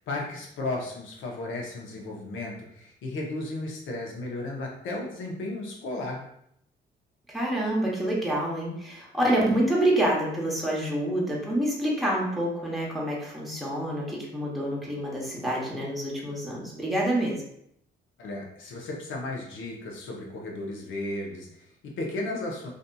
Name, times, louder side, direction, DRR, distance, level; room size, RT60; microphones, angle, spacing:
voice 1, 0.0-6.3 18.2-22.7, left 2 dB, 75° left, -1 dB, 0.8 m, -34 dB
voice 2, 7.3-17.4, right 1 dB, ahead, -5 dB, 0.8 m, -27 dB
2.7 x 2.6 x 2.2 m, 0.73 s
cardioid pair, 90°, 20 cm